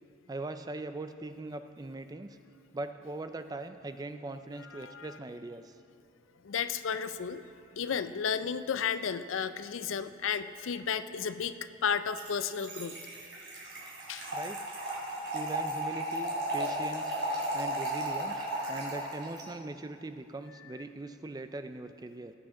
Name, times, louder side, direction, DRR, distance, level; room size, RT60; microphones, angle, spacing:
voice 1, 0.3-2.4 2.7-5.8 14.3-14.6 15.3-17.2 17.5-22.3, right 2 dB, 20° right, 9 dB, 0.3 m, -41 dB
voice 2, 4.6-5.2 6.4-7.4 7.7-13.0 14.1-14.3 20.6-20.7, left 7 dB, 85° left, 12 dB, 0.4 m, -33 dB
Trickle dribble / Fill (with liquid), 12.1-19.4, right 1 dB, 70° right, 3.4 m, -35 dB
19.0 x 8.6 x 3.8 m, 2.6 s
head